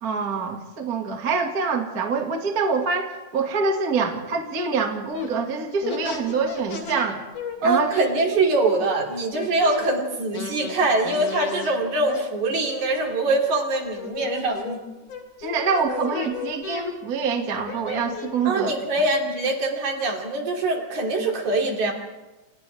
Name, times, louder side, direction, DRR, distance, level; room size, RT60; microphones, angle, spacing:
voice 1, 0.0-7.2 7.6-7.9 15.4-18.7, right 5 dB, 30° right, 2 dB, 2.2 m, -25 dB
sound 1, 5.1-5.3 5.8-7.1 7.3-9.8 10.3-11.7 12.0-12.2 12.7-13.5 13.9-14.8 15.1-16.8 17.4-18.5, left 5 dB, 70° left, 4.1 m, -35 dB
voice 2, 7.6-14.8 18.5-21.9, right 2 dB, 65° right, 1 dB, 4.4 m, -23 dB
30.0 x 28.5 x 3.5 m, 1.1 s
omnidirectional pair, 3.7 m